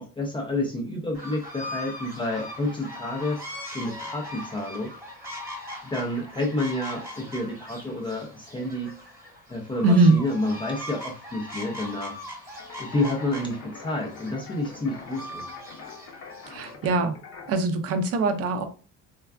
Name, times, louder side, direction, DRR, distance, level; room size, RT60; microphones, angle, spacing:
voice 1, 0.0-3.4 3.7-4.9 5.8-8.9 9.5-12.2 12.8-15.5, left 2 dB, 15° left, 0 dB, 0.3 m, -29 dB
sound 1, 1.1-16.7, left 1 dB, 10° right, 1.1 m, -40 dB
voice 2, 9.8-10.2 16.5-17.2 17.5-18.6, right 3 dB, 45° right, 8 dB, 0.4 m, -21 dB
sound 2, 12.6-17.5, left 4 dB, 50° left, 0.7 m, -44 dB
3.4 x 2.2 x 2.2 m, 0.37 s
cardioid pair, 160°, 33 cm